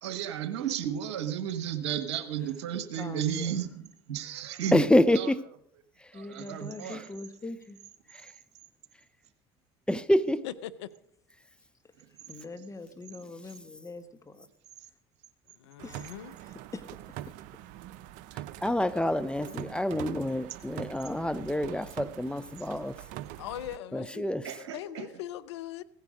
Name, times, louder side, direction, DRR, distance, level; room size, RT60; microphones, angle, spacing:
voice 1, 0.0-4.8 5.1-5.3 6.1-7.0 24.4-25.0, right 10 dB, 80° right, 1.3 m, -33 dB
voice 2, 3.0-3.7 6.1-7.8 12.3-14.5 15.8-16.2 16.7-16.8, left 3 dB, 20° left, 1.5 m, -42 dB
voice 3, 4.7-5.4 9.9-10.4 18.6-23.0 23.9-24.4, left 1 dB, 5° left, 0.6 m, -26 dB
voice 4, 10.4-10.9 15.6-16.3 23.4-24.3 24.7-25.8, left 12 dB, 80° left, 0.7 m, -40 dB
sound 1, 15.8-23.8, right 13 dB, 65° right, 0.6 m, -43 dB
16.5 x 10.5 x 5.1 m
hypercardioid pair, 75°, 14 cm